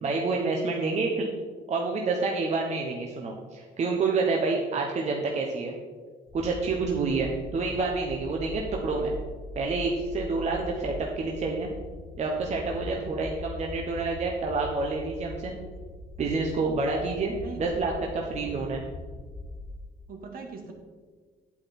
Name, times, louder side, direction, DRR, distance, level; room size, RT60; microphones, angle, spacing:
voice 1, 0.0-1.3 1.7-5.7 6.3-9.1 9.5-11.7 12.2-15.5 16.2-18.8, right 3 dB, 40° right, 0 dB, 1.1 m, -28 dB
voice 2, 0.6-1.0 6.8-7.3 12.9-13.1 17.4-17.9 18.4-18.7 20.1-20.7, right 4 dB, 60° right, 3 dB, 1.9 m, -40 dB
sound 1, 6.3-19.8, left 2 dB, 20° left, 0.7 m, -41 dB
8.7 x 8.3 x 4.3 m, 1.5 s
cardioid pair, 110°, 17 cm